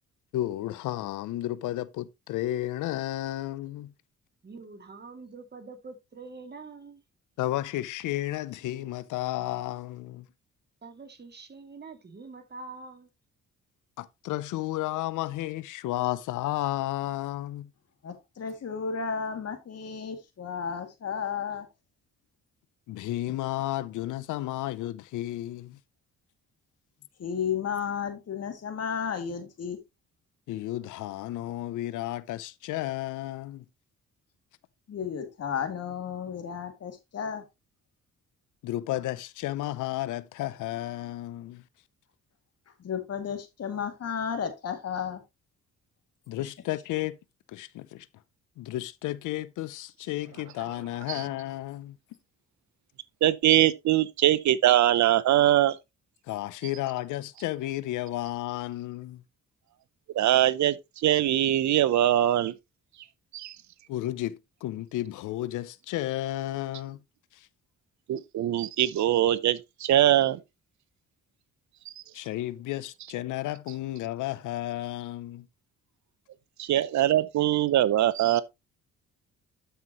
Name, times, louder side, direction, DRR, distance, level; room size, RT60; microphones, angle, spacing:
voice 1, 0.3-3.9 7.4-10.3 14.0-17.7 22.9-25.8 30.5-33.6 38.6-41.6 46.3-47.2 47.5-48.1 48.6-52.0 56.2-59.2 63.9-67.0 67.3-67.5 72.1-75.5, left 15 dB, 80° left, 0.6 m, -32 dB
voice 2, 4.4-7.0 10.8-13.1, right 4 dB, 35° right, 2.5 m, -45 dB
voice 3, 18.0-21.7 27.2-29.8 34.9-37.4 42.8-45.2, left 7 dB, 55° left, 2.4 m, -33 dB
voice 4, 53.2-55.8 60.1-62.5 63.3-63.6 68.1-70.4 76.6-78.4, right 13 dB, 65° right, 0.8 m, -22 dB
12.5 x 5.8 x 3.0 m
cardioid pair, 90°, 30 cm